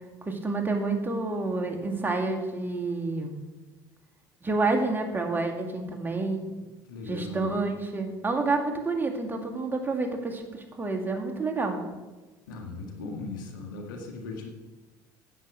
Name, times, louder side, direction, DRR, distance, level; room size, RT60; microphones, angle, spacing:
voice 1, 0.3-3.4 4.4-6.4 7.1-11.8, right 3 dB, 20° right, 2 dB, 2.1 m, -29 dB
voice 2, 6.9-7.5 12.5-14.5, left 3 dB, 85° left, 3 dB, 1.8 m, -38 dB
10.0 x 7.7 x 6.4 m, 1.2 s
hypercardioid pair, 75°, 10 cm